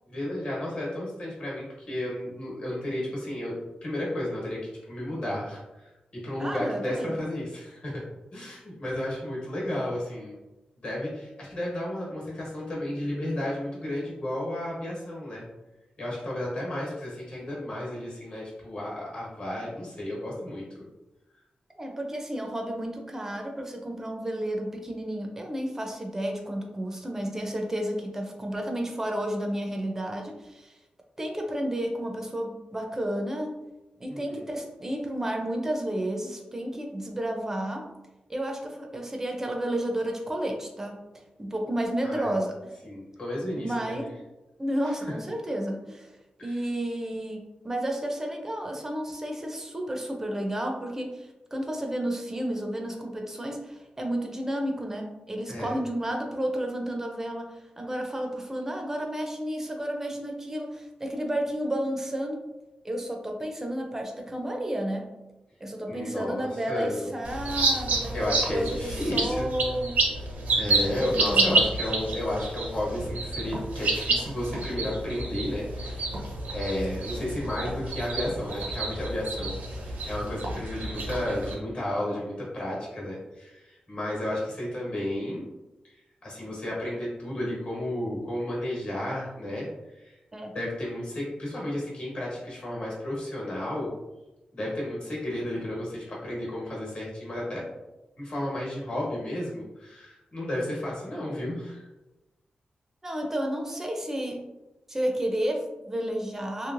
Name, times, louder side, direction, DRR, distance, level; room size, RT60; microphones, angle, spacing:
voice 1, 0.1-4.6 4.9-8.0 8.3-10.4 10.8-15.4 16.0-20.9 34.1-34.5 42.0-42.3 42.8-44.0 46.4-46.6 55.5-55.8 65.9-67.1 68.1-69.5 70.5-76.1 76.5-79.6 79.8-85.4 86.2-90.2 90.5-93.9 94.5-97.7 98.2-101.9, left 1 dB, 50° left, -5 dB, 1.2 m, -32 dB
voice 2, 6.4-7.1 21.8-30.7 31.2-33.6 34.0-37.9 38.3-41.0 41.4-42.6 43.6-44.1 44.6-46.1 46.4-62.4 62.8-65.1 65.6-70.0 71.3-71.6 90.3-90.5 103.0-104.4 104.9-106.7, right 1 dB, 15° right, 2 dB, 0.4 m, -31 dB
sound 1, 67.2-81.5, right 2 dB, 90° right, 0.7 m, -29 dB
3.1 x 2.8 x 2.5 m, 1.0 s
wide cardioid pair, 165°, 3 cm